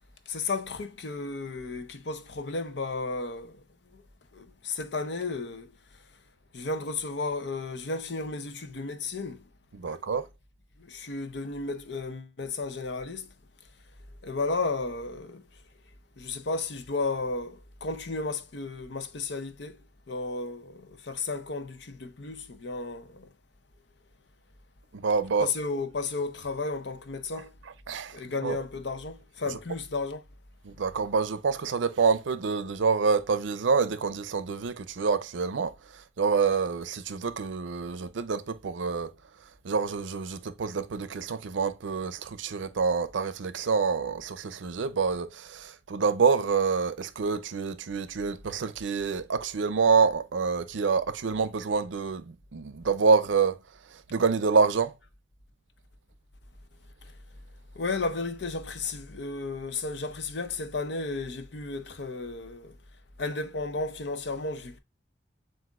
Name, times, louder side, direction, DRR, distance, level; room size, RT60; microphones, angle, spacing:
voice 1, 0.3-3.6 3.9-4.0 4.3-5.7 6.5-9.4 9.8-10.0 10.9-13.3 14.2-15.4 16.2-19.8 20.1-23.3 25.4-27.5 28.1-30.2 57.8-62.7 63.2-64.8, left 3 dB, 70° left, 0.7 m, -33 dB
voice 2, 9.7-10.3 24.9-25.5 27.9-28.2 28.4-28.6 29.5-29.6 30.6-39.1 39.6-53.6 54.1-54.9, right 5 dB, 90° right, 0.5 m, -27 dB
7.5 x 2.6 x 2.4 m
head